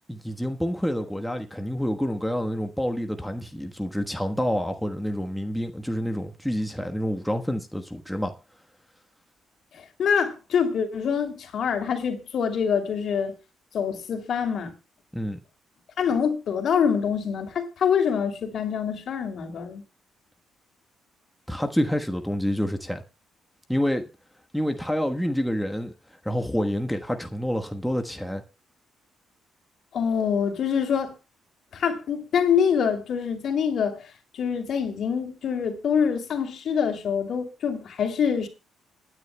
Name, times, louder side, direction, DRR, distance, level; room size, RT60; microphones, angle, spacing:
voice 1, 0.1-8.3 15.1-15.4 21.5-23.0 23.7-24.1 24.5-25.9 26.2-28.4, equal, ahead, 1.2 m, -28 dB
voice 2, 9.7-13.4 13.7-14.7 16.0-19.8 29.9-31.2 31.7-38.5, left 7 dB, 60° left, 2.7 m, -25 dB
27.5 x 9.8 x 2.2 m
cardioid pair, 90°, 0 cm